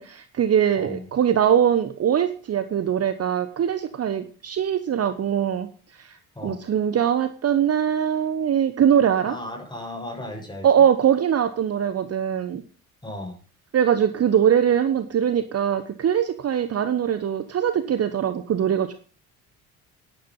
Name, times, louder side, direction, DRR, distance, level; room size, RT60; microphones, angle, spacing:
voice 1, 0.0-5.7 6.0-6.2 6.4-9.3 10.6-12.6 13.7-18.9, right 9 dB, 35° right, 11 dB, 1.2 m, -22 dB
voice 2, 0.8-1.1 6.3-6.6 9.2-10.7 13.0-13.4, left 1 dB, 10° left, 1 dB, 6.6 m, -35 dB
12.5 x 10.5 x 5.5 m, 0.40 s
figure-of-eight pair, 50°, 43 cm